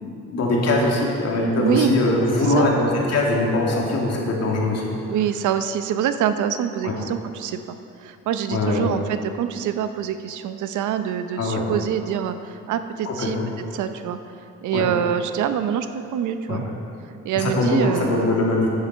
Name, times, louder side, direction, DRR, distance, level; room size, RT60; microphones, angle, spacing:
voice 1, 0.0-4.9 6.8-6.9 8.5-8.9 11.4-11.7 13.0-13.5 14.7-14.8 16.5-16.6 17.3-18.7, left 2 dB, 55° left, -2 dB, 2.4 m, -22 dB
voice 2, 1.6-2.0 2.6-2.7 5.1-7.8 8.0-13.4 13.7-14.2 14.6-15.9 16.1-16.6 17.2-18.4, right 9 dB, 80° right, 10 dB, 0.7 m, -25 dB
9.8 x 9.2 x 5.7 m, 2.6 s
cardioid pair, 90°, 30 cm